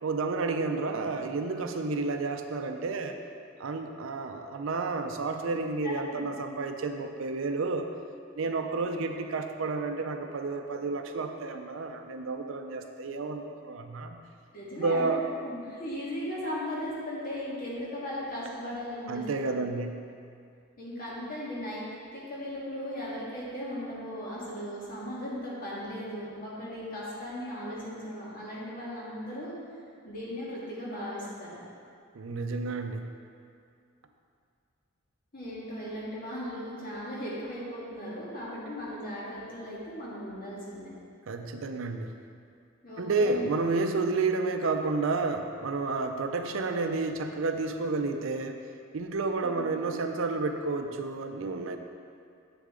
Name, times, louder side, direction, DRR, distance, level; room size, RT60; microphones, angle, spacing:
voice 1, 0.0-3.2 3.6-7.9 8.3-14.2 14.8-15.2 19.1-20.0 32.1-33.1 41.3-42.1 43.0-48.6 48.9-51.8, right 3 dB, 70° right, 6 dB, 0.5 m, -31 dB
voice 2, 5.8-6.2 14.5-15.1 15.4-19.5 20.8-21.8 22.1-29.5 30.0-31.6 35.3-40.9 42.8-43.5 49.4-49.6, equal, 40° left, -7 dB, 1.9 m, -37 dB
7.7 x 6.6 x 3.7 m, 2.4 s
head